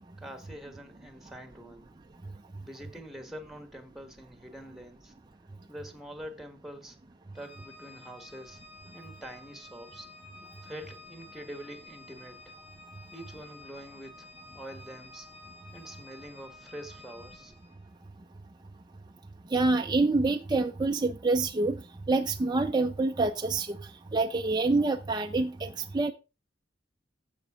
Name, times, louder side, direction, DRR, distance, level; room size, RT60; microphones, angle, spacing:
voice 1, 0.2-1.9 2.6-5.1 5.7-7.0 7.3-8.6 8.9-10.1 10.6-12.5 13.1-14.3 14.5-15.3 15.7-17.5, equal, ahead, 1.3 m, -45 dB
Organ, 7.3-17.7, left 2 dB, 30° left, 4.2 m, -51 dB
voice 2, 19.5-21.8 22.1-26.1, right 3 dB, 20° right, 0.5 m, -27 dB
15.0 x 5.3 x 3.6 m
head